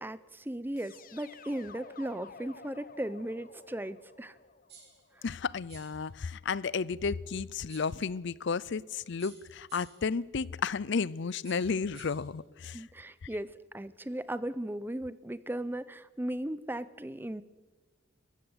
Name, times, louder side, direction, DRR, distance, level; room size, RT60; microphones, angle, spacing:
voice 1, 0.0-4.4 5.2-5.3 12.7-17.4, right 1 dB, 10° right, 0.6 m, -37 dB
sound 1, 0.8-5.7, left 5 dB, 45° left, 1.0 m, -52 dB
sound 2, 4.7-5.0 5.7-6.0 7.7-8.0 9.2-10.1 11.4-12.3, right 6 dB, 55° right, 5.7 m, -54 dB
voice 2, 5.2-12.9, left 5 dB, 60° left, 0.5 m, -33 dB
23.0 x 15.0 x 7.9 m
head